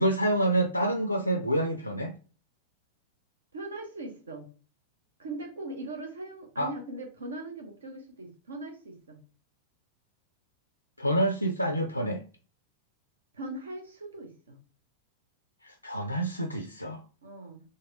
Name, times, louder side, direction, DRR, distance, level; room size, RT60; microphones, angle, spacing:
voice 1, 0.0-2.1 6.6-6.7 11.0-12.2 15.6-17.0, right 1 dB, 90° left, 5 dB, 0.4 m, -27 dB
voice 2, 3.5-4.5 5.2-9.2 13.3-14.6 17.2-17.6, right 2 dB, 70° right, 5 dB, 0.9 m, -40 dB
4.0 x 3.2 x 2.5 m, 0.37 s
figure-of-eight pair, 90°, 0 cm